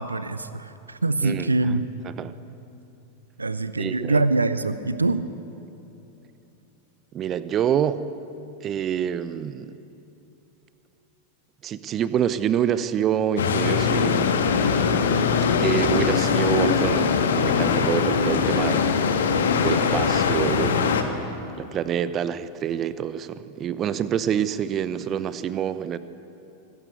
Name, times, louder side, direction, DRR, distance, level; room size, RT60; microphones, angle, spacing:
voice 1, 0.0-1.9 3.4-5.2, right 3 dB, 80° right, 14 dB, 0.7 m, -24 dB
voice 2, 1.2-1.8 2.1-2.3 3.8-4.2 7.1-8.0 8.6-9.8 11.6-14.3 15.4-18.9 19.6-21.1 21.6-26.0, right 9 dB, 30° right, 15 dB, 0.8 m, -27 dB
sound 1, 13.4-21.0, left 6 dB, 65° left, 1.6 m, -21 dB
24.0 x 13.0 x 8.3 m, 2.9 s
figure-of-eight pair, 90°, 0 cm